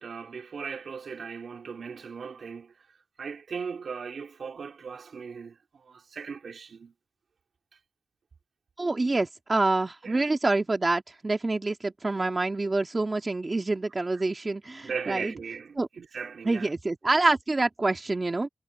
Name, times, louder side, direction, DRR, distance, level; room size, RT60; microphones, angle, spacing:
voice 1, 0.0-2.7 3.2-6.9 10.0-10.3 14.8-16.7, right 5 dB, 85° right, 3.3 m, -38 dB
voice 2, 8.8-15.3 15.8-15.9 16.4-18.5, right 2 dB, 35° right, 2.2 m, -26 dB
wide cardioid pair, 95°, 0 cm